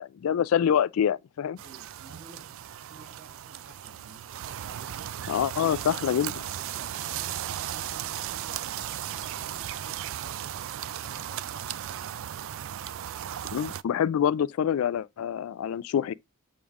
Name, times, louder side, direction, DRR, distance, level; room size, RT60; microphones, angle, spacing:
voice 1, 0.0-1.6 5.3-6.3 13.5-16.1, left 9 dB, 75° left, 0.3 m, -26 dB
voice 2, 1.5-5.3 5.9-6.3 6.6-12.3, right 2 dB, 45° right, 2.0 m, -52 dB
sound 1, 1.6-13.8, right 11 dB, 65° right, 0.4 m, -36 dB
7.1 x 4.9 x 3.5 m
head